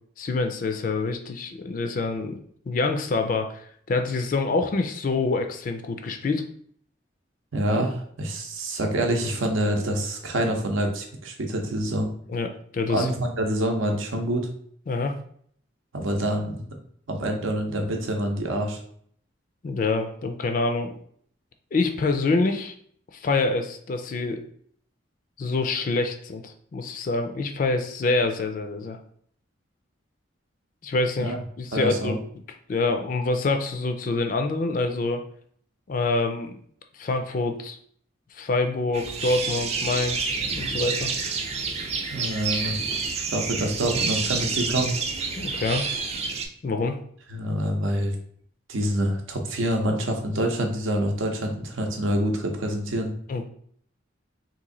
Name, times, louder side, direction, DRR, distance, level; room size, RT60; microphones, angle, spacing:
voice 1, 0.2-2.4 2.7-6.4 12.3-13.1 14.9-15.2 19.6-21.0 21.7-22.7 23.1-24.4 25.4-29.0 30.8-32.2 32.7-35.2 35.9-36.5 36.9-37.8 38.3-41.1 45.4-45.9 46.6-47.0 53.3-53.5, left 3 dB, 45° left, 6 dB, 0.3 m, -26 dB
voice 2, 7.5-12.1 12.9-14.5 15.9-16.7 17.1-18.8 31.2-31.4 31.7-32.2 42.1-42.8 43.3-45.0 47.3-48.1 48.7-53.1, right 1 dB, 90° right, 3 dB, 0.7 m, -26 dB
sound 1, 38.9-46.5, right 5 dB, 30° right, 0.3 m, -29 dB
3.0 x 2.6 x 3.7 m, 0.62 s
head